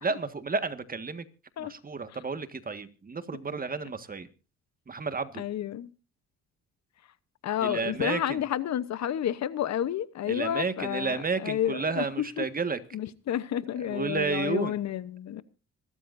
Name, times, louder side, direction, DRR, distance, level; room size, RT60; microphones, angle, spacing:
voice 1, 0.0-1.2 1.6-4.3 4.9-5.4 7.6-8.4 10.3-12.8 13.8-14.7, right 4 dB, 30° right, 1.7 m, -31 dB
voice 2, 5.4-5.9 7.4-12.4 12.9-15.4, left 11 dB, 65° left, 1.0 m, -30 dB
26.0 x 13.0 x 2.6 m
cardioid pair, 90°, 30 cm